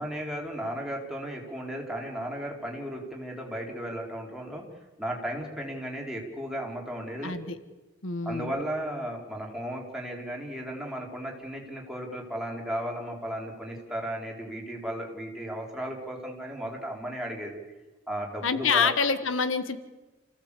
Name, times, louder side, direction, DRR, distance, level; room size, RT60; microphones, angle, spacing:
voice 1, 0.0-4.7 5.0-7.4 8.2-17.6 18.1-18.9, equal, 5° right, -1 dB, 4.1 m, -35 dB
voice 2, 7.2-7.6 8.0-8.5 18.4-19.8, left 5 dB, 85° left, 11 dB, 1.5 m, -26 dB
28.5 x 16.5 x 8.4 m, 1.1 s
head